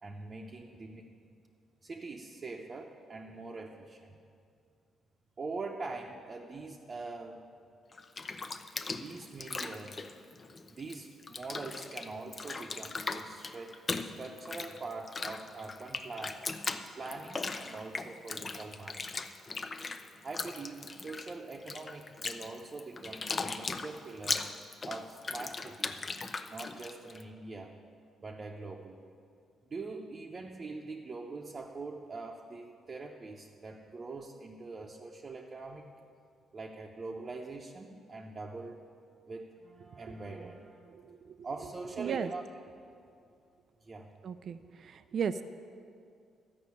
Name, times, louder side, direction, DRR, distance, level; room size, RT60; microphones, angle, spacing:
voice 1, 0.0-1.1 1.8-4.2 5.4-7.4 9.0-10.0 10.7-16.5 17.0-19.2 20.2-24.5 24.9-26.0 26.5-27.8 28.2-29.0 29.7-35.9 36.5-38.8 39.3-40.9 41.4-42.4 43.8-44.1, right 3 dB, 35° right, -1 dB, 0.8 m, -43 dB
Bathtub (filling or washing), 7.9-11.0 11.2-27.2, left 4 dB, 35° left, 0.6 m, -39 dB
voice 2, 42.0-42.3 44.2-45.4, right 7 dB, 55° right, 11 dB, 0.4 m, -35 dB
12.5 x 5.4 x 8.4 m, 2.4 s
cardioid pair, 90°, 0 cm